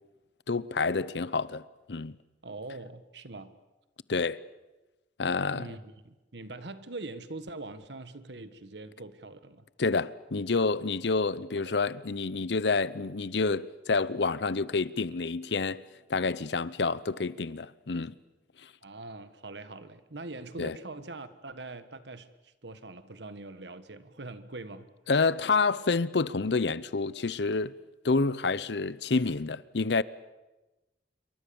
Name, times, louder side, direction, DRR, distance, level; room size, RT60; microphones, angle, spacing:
voice 1, 0.5-1.6 1.9-2.2 4.1-4.4 5.2-5.7 9.8-15.8 16.1-18.1 20.6-20.8 25.1-27.7 28.0-30.0, left 4 dB, 70° left, 0.7 m, -28 dB
voice 2, 2.4-3.5 5.5-9.7 11.5-11.7 18.8-24.9, right 2 dB, 75° right, 1.5 m, -43 dB
27.5 x 23.5 x 7.0 m
head